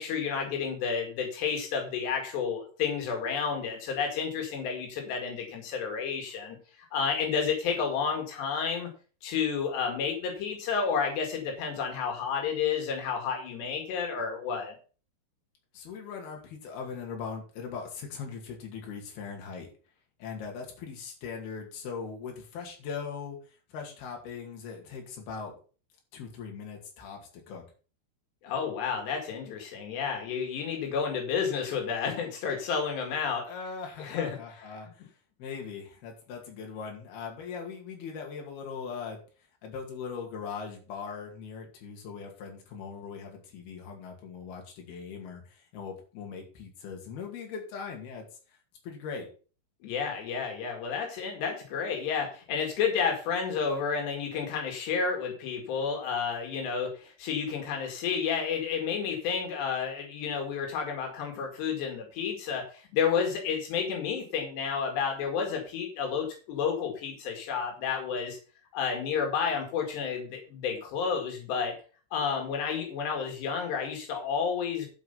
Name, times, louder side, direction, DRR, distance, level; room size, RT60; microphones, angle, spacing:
voice 1, 0.0-8.9 9.2-14.8 28.4-33.5 34.0-34.4 49.8-68.4 68.7-71.8 72.1-74.9, left 6 dB, 90° left, 2 dB, 4.2 m, -31 dB
voice 2, 15.7-19.7 20.2-25.6 26.1-27.6 33.5-35.1 35.4-39.2 39.6-48.6 48.8-49.3, left 5 dB, 70° left, 1 dB, 4.2 m, -40 dB
12.5 x 5.0 x 5.5 m, 0.37 s
omnidirectional pair, 4.8 m